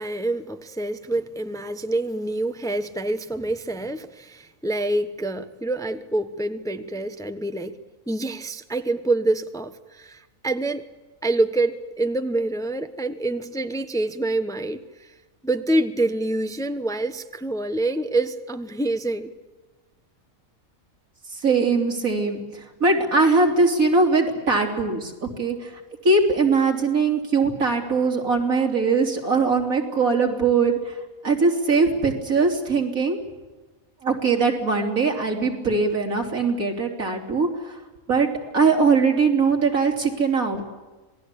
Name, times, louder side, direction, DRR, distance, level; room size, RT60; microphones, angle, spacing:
voice 1, 0.0-7.8 8.1-10.9 11.2-15.1 15.4-19.3, right 2 dB, 5° left, 0.9 m, -26 dB
voice 2, 21.4-25.8 26.0-31.0 31.2-33.2 34.0-37.8 38.1-38.3 38.5-40.6, right 4 dB, 85° right, 3.8 m, -21 dB
27.0 x 19.5 x 8.4 m
omnidirectional pair, 1.4 m